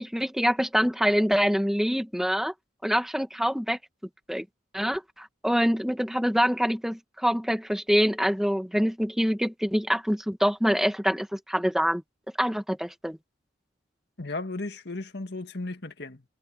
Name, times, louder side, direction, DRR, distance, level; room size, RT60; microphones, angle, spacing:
voice 1, 0.0-2.5 2.8-3.8 4.3-4.4 4.7-12.0 12.4-13.2, equal, ahead, 1.5 m, -25 dB
voice 2, 14.2-16.2, left 2 dB, 65° left, 2.0 m, -35 dB
head